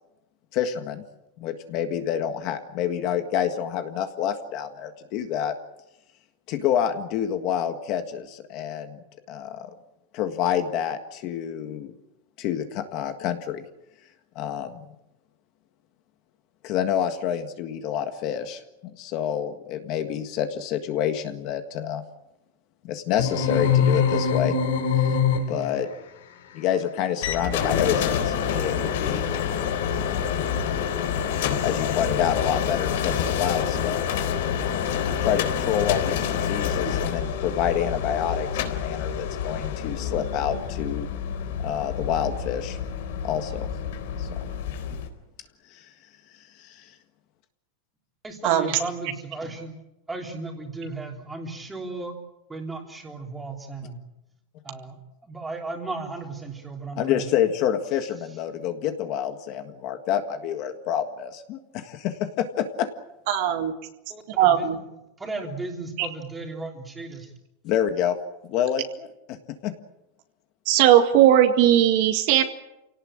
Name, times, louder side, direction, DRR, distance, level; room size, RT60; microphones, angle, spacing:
voice 1, 0.5-1.0 1.4-5.5 6.5-9.7 10.1-11.9 12.4-13.6 14.3-14.8 16.6-22.0 22.8-24.5 25.1-25.2 25.5-25.9 26.5-29.3 29.9-30.2 31.6-34.3 35.2-41.1 41.6-42.8 43.2-43.7 44.2-44.5 45.7-45.9 46.4-46.9 57.0-62.9 67.6-68.2 68.5-69.4 69.6-69.7, left 9 dB, 35° left, 8 dB, 1.7 m, -28 dB
sound 1, 23.2-25.8, left 6 dB, 75° left, 4.2 m, -22 dB
sound 2, 27.2-45.1, left 8 dB, 60° left, 3.8 m, -27 dB
voice 2, 48.2-49.8 50.1-52.1 52.5-54.0 54.6-55.0 55.2-57.2 64.1-64.7 65.2-67.3, right 3 dB, 5° right, 2 dB, 3.3 m, -35 dB
voice 3, 63.3-63.7 64.4-64.8 66.0-66.1 70.7-72.4, right 11 dB, 40° right, 7 dB, 1.9 m, -18 dB
28.5 x 18.0 x 8.8 m, 0.93 s
supercardioid pair, 180°, 0 cm